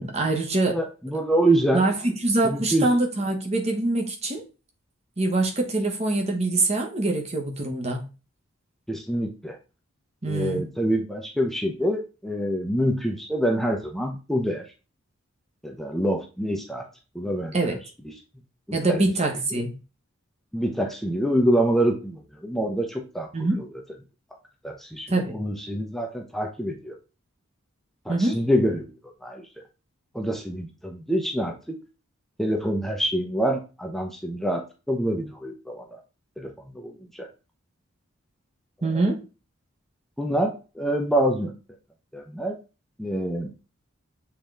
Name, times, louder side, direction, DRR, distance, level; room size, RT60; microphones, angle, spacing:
voice 1, 0.0-0.8 1.7-4.4 5.2-8.1 10.2-10.7 17.5-17.8 18.7-19.8 23.3-23.6 25.1-25.4 28.1-28.4 38.8-39.2, right 2 dB, 30° right, 1.1 m, -24 dB
voice 2, 0.7-1.8 2.4-2.9 8.9-9.6 10.2-14.6 15.6-16.8 17.1-17.7 18.7-19.0 19.5-19.6 20.5-23.5 24.6-26.9 28.1-28.9 29.2-29.5 30.1-31.8 32.4-35.8 36.4-37.3 38.9-39.0 40.2-41.5 42.1-42.5 43.0-43.5, right 1 dB, ahead, 0.8 m, -26 dB
7.3 x 3.8 x 3.4 m
head